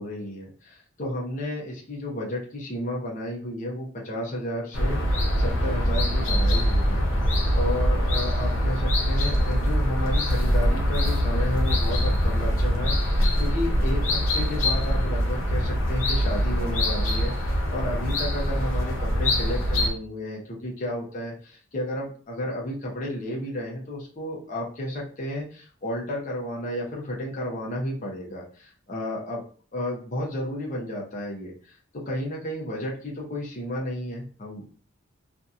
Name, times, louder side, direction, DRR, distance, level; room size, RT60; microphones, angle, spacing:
voice 1, 0.0-7.0 7.5-29.4 29.7-34.7, left 1 dB, 40° left, -3 dB, 0.7 m, -32 dB
sound 1, 4.7-19.9, equal, 90° left, 0.7 m, -23 dB
2.7 x 2.6 x 2.3 m, 0.41 s
head